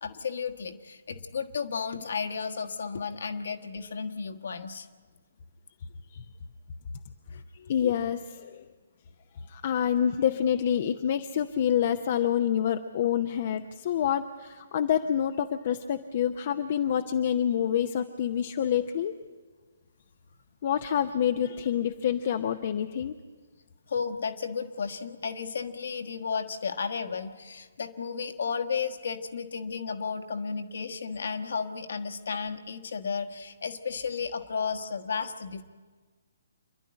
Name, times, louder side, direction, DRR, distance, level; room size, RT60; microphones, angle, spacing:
voice 1, 0.0-4.9 7.3-7.9 23.9-35.6, left 5 dB, 60° left, 6 dB, 1.5 m, -33 dB
voice 2, 7.7-8.7 9.5-19.1 20.6-23.1, left 9 dB, 45° left, 7 dB, 0.8 m, -27 dB
27.5 x 11.5 x 9.8 m, 1.4 s
figure-of-eight pair, 130°, 0 cm